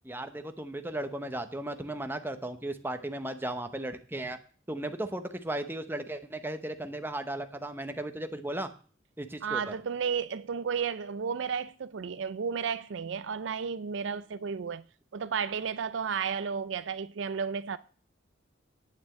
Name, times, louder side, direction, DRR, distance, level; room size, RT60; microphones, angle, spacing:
voice 1, 0.0-4.4 4.7-8.7 9.2-9.7, right 1 dB, 10° right, 0.9 m, -36 dB
voice 2, 9.4-14.8 15.1-17.8, right 6 dB, 70° right, 0.4 m, -33 dB
9.3 x 6.2 x 8.3 m
head